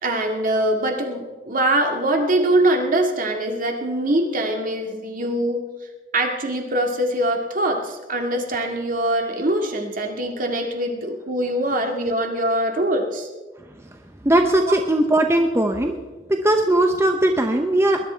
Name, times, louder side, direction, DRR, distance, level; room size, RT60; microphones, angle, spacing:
voice 1, 0.0-5.7 6.1-13.3 14.7-14.8, right 1 dB, 50° right, 3 dB, 2.2 m, -23 dB
voice 2, 14.2-15.9 16.3-18.1, right 1 dB, 15° right, 4 dB, 0.8 m, -19 dB
20.0 x 11.0 x 4.5 m, 1.2 s
head